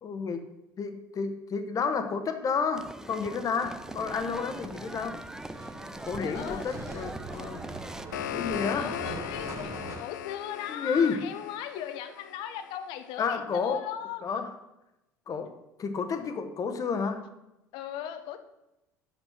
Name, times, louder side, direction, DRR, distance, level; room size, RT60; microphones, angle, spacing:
voice 1, 0.0-0.5 0.8-5.2 6.0-7.7 8.3-8.9 10.7-11.3 13.2-13.8 14.2-14.5 15.3-17.2, left 5 dB, 35° left, 8 dB, 1.2 m, -31 dB
sound 1, 2.7-8.1, right 1 dB, 5° right, 0.4 m, -42 dB
sound 2, 3.6-10.0, right 2 dB, 30° right, 1.4 m, -42 dB
voice 2, 6.2-6.8 8.6-14.3 17.7-18.4, left 10 dB, 60° left, 9 dB, 0.8 m, -38 dB
sound 3, 7.7-12.8, left 11 dB, 75° left, 0.4 m, -38 dB
8.3 x 5.9 x 5.9 m, 0.91 s
figure-of-eight pair, 65°, 10 cm